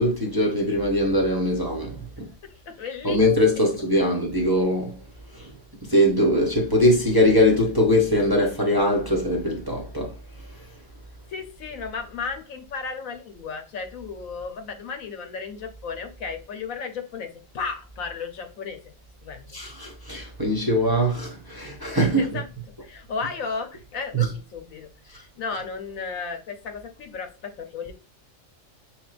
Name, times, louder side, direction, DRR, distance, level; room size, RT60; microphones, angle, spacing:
voice 1, 0.0-2.3 3.0-5.0 5.3-5.5 5.8-10.2 19.5-22.4 24.1-24.3, left 1 dB, 20° right, 0.7 m, -22 dB
voice 2, 2.7-3.2 11.3-18.9 19.2-19.6 22.2-22.5 22.8-27.9, left 5 dB, 85° left, 1.3 m, -34 dB
6.2 x 3.1 x 2.4 m
omnidirectional pair, 1.4 m